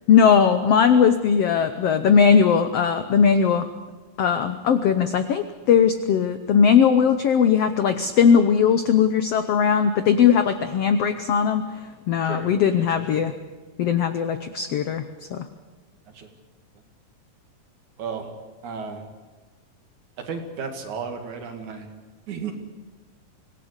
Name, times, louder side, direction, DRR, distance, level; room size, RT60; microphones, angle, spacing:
voice 1, 0.1-3.7 4.2-11.6 12.1-13.3 13.8-15.0 15.3-15.4, left 7 dB, 75° left, 9 dB, 1.4 m, -19 dB
voice 2, 12.8-13.2 16.1-16.3 18.0-18.3 18.6-19.1 20.2-21.9 22.3-22.5, right 5 dB, 60° right, 5 dB, 3.4 m, -33 dB
25.0 x 17.5 x 8.1 m, 1.3 s
omnidirectional pair, 4.1 m